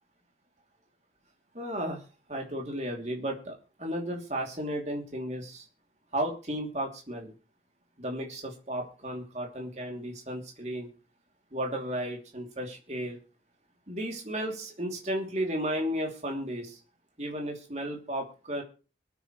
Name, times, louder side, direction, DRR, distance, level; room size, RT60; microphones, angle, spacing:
voice 1, 1.5-2.0 2.3-5.6 6.1-7.3 8.0-10.9 11.5-13.2 13.9-16.8 17.2-18.6, equal, 40° right, 1 dB, 2.9 m, -34 dB
24.5 x 9.2 x 3.2 m, 0.35 s
head